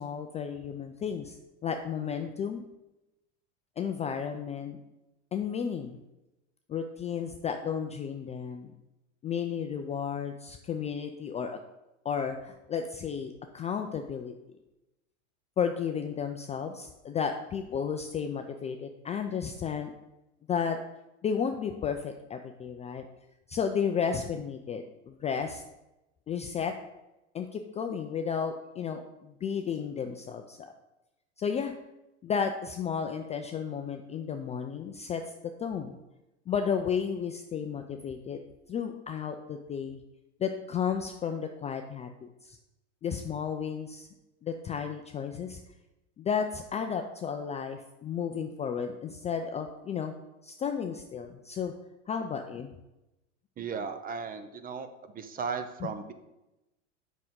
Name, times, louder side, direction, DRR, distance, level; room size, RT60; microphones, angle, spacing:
voice 1, 0.0-2.6 3.8-4.8 5.3-6.0 6.7-8.7 9.2-11.6 12.0-14.3 15.6-19.9 20.5-20.8 21.2-23.0 23.5-25.6 26.3-26.7 27.3-30.7 31.4-31.7 32.2-35.2 35.6-36.0 36.5-38.4 38.7-40.0 40.4-42.6 43.0-44.1 44.4-45.6 46.2-50.1 50.4-51.7 52.1-52.7, left 7 dB, 20° left, 5 dB, 0.4 m, -33 dB
voice 2, 53.6-56.1, right 5 dB, 25° right, 9 dB, 0.7 m, -36 dB
7.6 x 5.9 x 3.7 m, 0.96 s
hypercardioid pair, 100°, 36 cm